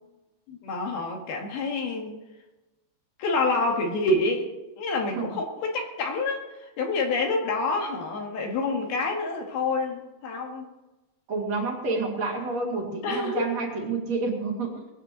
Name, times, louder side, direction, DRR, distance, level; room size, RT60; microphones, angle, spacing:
voice 1, 0.5-2.2 3.2-10.7 13.0-13.5, left 3 dB, 75° left, 1 dB, 4.2 m, -28 dB
voice 2, 11.3-14.9, right 3 dB, 45° right, -1 dB, 3.2 m, -29 dB
20.5 x 8.0 x 7.6 m, 1.1 s
omnidirectional pair, 4.5 m